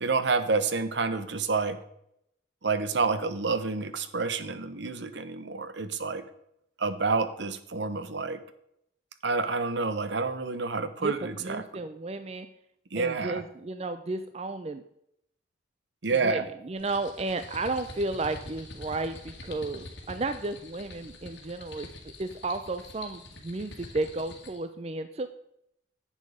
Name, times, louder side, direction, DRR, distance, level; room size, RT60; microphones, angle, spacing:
voice 1, 0.0-1.8 2.6-6.2 6.8-8.4 9.2-11.6 12.9-13.4 16.0-16.5, right 4 dB, 65° right, 12 dB, 0.9 m, -28 dB
voice 2, 11.0-12.5 12.9-14.8 16.2-25.3, right 3 dB, 30° right, 10 dB, 0.4 m, -33 dB
sound 1, 16.8-24.6, left 2 dB, 65° left, 2.1 m, -45 dB
10.5 x 7.4 x 5.0 m, 0.76 s
head